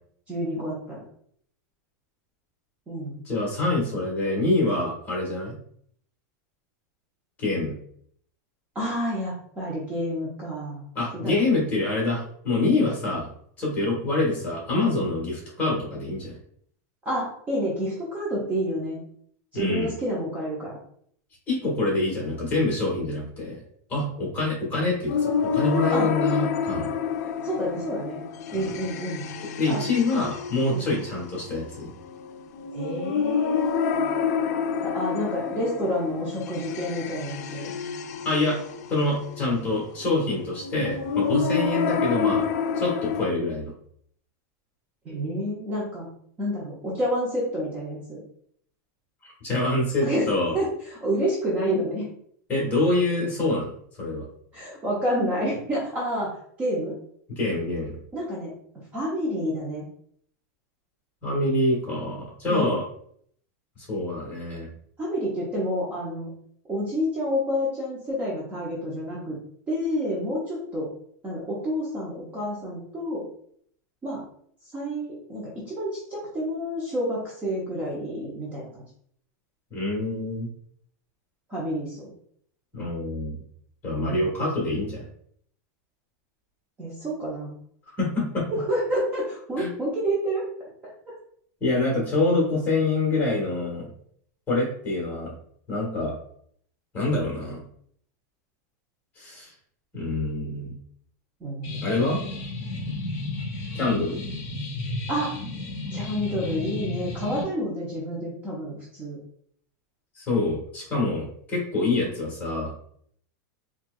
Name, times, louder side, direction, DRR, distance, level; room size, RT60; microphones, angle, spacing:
voice 1, 0.3-1.0 2.9-3.2 8.7-10.8 11.1-11.4 17.0-19.0 19.5-20.8 25.9-26.1 27.4-28.2 28.5-29.2 29.7-29.8 30.7-30.9 32.7-34.0 34.8-37.7 45.0-46.1 46.4-48.2 50.0-52.1 54.5-56.3 56.6-57.0 58.1-58.5 58.9-59.8 62.5-62.8 65.0-66.3 66.7-69.4 69.7-70.9 71.2-73.3 74.0-74.2 74.7-78.8 81.5-82.1 84.0-84.2 86.8-87.5 88.7-90.4 101.4-102.1 105.1-105.3 105.9-109.2, equal, 15° right, -5 dB, 0.7 m, -29 dB
voice 2, 3.2-5.5 7.4-7.7 10.9-13.3 13.6-16.4 19.5-19.9 21.5-23.6 23.9-26.9 28.5-28.7 29.6-31.9 38.2-38.6 38.9-42.4 42.7-43.7 49.2-50.6 52.5-53.7 54.0-54.2 57.3-58.0 61.2-62.8 63.9-64.7 79.7-80.5 82.7-83.4 83.8-85.1 88.0-88.5 89.6-89.7 91.6-93.9 94.5-95.3 95.7-96.1 96.9-97.6 99.2-99.5 99.9-100.7 101.8-102.2 103.7-104.2 110.1-112.7, left 2 dB, 15° left, -3 dB, 1.4 m, -26 dB
sound 1, 25.1-43.3, left 6 dB, 65° left, 0.4 m, -28 dB
sound 2, 101.6-107.4, left 2 dB, 40° left, 1.5 m, -33 dB
4.3 x 2.3 x 2.4 m, 0.63 s
supercardioid pair, 165°, 10 cm